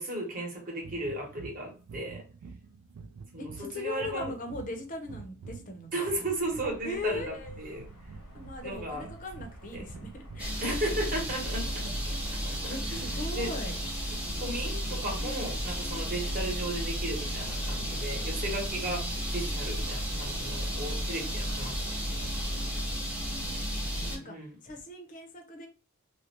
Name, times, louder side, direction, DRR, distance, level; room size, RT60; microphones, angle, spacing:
voice 1, 0.0-2.2 3.3-4.3 5.9-7.8 8.6-9.0 9.7-9.8 10.6-12.2 12.4-12.6 12.9-13.0 13.3-13.5 14.4-19.1 19.3-21.8 24.0-24.6, right 1 dB, 40° right, 0 dB, 1.0 m, -35 dB
sound 1, 0.8-13.5, right 4 dB, 85° right, 0.4 m, -48 dB
voice 2, 3.4-6.0 6.8-7.6 8.3-11.1 12.7-13.8 15.2-16.1 21.5-23.6 24.1-24.4 24.6-25.7, left 2 dB, 35° left, 4 dB, 0.6 m, -40 dB
sound 2, 6.4-22.8, equal, 80° left, 1.0 m, -48 dB
sound 3, 10.4-24.2, equal, 5° right, 0.6 m, -33 dB
2.5 x 2.1 x 2.9 m, 0.35 s
head